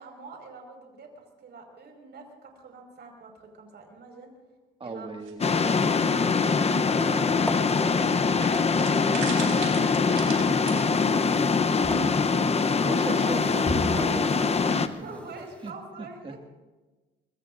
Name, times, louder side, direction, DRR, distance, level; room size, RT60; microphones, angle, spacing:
voice 1, 0.0-4.3 4.8-5.1 5.5-8.5 12.2-12.6 14.8-16.4, right 3 dB, 60° right, 2 dB, 5.2 m, -46 dB
voice 2, 4.8-5.8 12.7-15.2 15.6-15.7 16.0-16.4, right 3 dB, 25° right, 4 dB, 2.0 m, -38 dB
sound 1, 5.3-6.0 7.0-7.1 7.3-7.4 8.4-10.8, right 8 dB, 85° right, 4.1 m, -37 dB
sound 2, 5.4-14.9, left 4 dB, 30° left, 0.8 m, -23 dB
sound 3, 7.1-15.7, equal, 5° left, 2.0 m, -41 dB
24.0 x 23.0 x 2.6 m, 1.2 s
cardioid pair, 90°, 20 cm